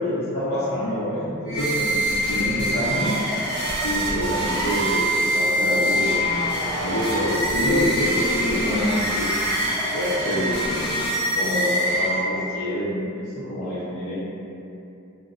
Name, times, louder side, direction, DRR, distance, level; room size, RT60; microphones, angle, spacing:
voice 1, 0.0-1.9 2.3-3.2 3.8-6.2 6.8-9.3 9.9-11.0 11.3-14.2, equal, 90° left, -11 dB, 0.6 m, -26 dB
sound 1, 1.5-12.5, equal, 50° right, 0.6 m, -24 dB
2.6 x 2.0 x 2.4 m, 2.7 s
head